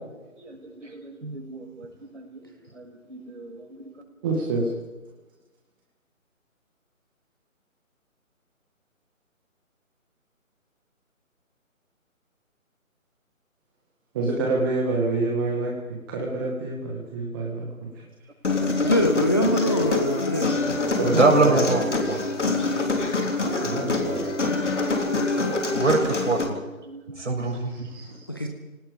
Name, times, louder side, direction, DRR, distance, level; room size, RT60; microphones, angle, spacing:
voice 1, 0.4-1.9 2.1-2.4 2.7-3.9 20.6-20.7 21.1-22.2 23.4-23.6 25.7-27.9, right 3 dB, 60° right, 1 dB, 6.8 m, -26 dB
voice 2, 4.2-4.7 14.1-18.0 21.0-21.6 23.6-24.3 27.7-28.3, right 2 dB, 15° right, -2 dB, 1.9 m, -27 dB
Human voice, 18.4-26.4, left 3 dB, 55° left, 3.5 m, -25 dB
voice 3, 18.8-20.5 28.3-28.5, equal, 15° left, 3 dB, 0.7 m, -23 dB
28.0 x 18.5 x 5.3 m, 1.1 s
figure-of-eight pair, 150°, 42 cm